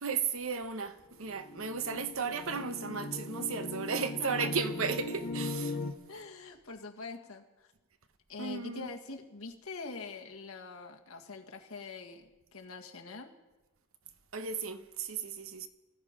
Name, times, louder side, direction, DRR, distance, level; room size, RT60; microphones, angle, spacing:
voice 1, 0.0-5.8 8.4-8.9 14.3-15.7, right 5 dB, 75° right, 1.0 m, -35 dB
sound 1, 1.2-5.9, left 2 dB, 55° left, 1.5 m, -39 dB
voice 2, 4.2-4.5 6.1-7.7 8.3-13.3, left 3 dB, 80° left, 1.8 m, -44 dB
19.5 x 14.5 x 5.2 m
head